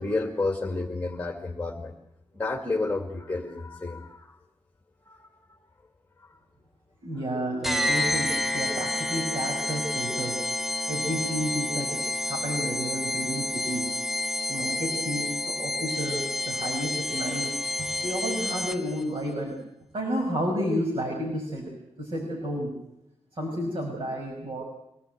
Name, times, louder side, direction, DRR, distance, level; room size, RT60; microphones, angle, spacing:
voice 1, 0.0-1.9 2.3-4.4 5.1-5.3 8.4-8.7, left 3 dB, 10° left, 1 dB, 2.3 m, -31 dB
voice 2, 7.0-10.4 10.9-13.9 14.5-19.6 19.9-22.7 23.3-24.6, equal, 55° right, 0 dB, 5.9 m, -31 dB
sound 1, 7.6-19.0, left 2 dB, 5° right, 0.8 m, -29 dB
24.5 x 17.5 x 9.2 m, 0.85 s
wide cardioid pair, 150°, 11 cm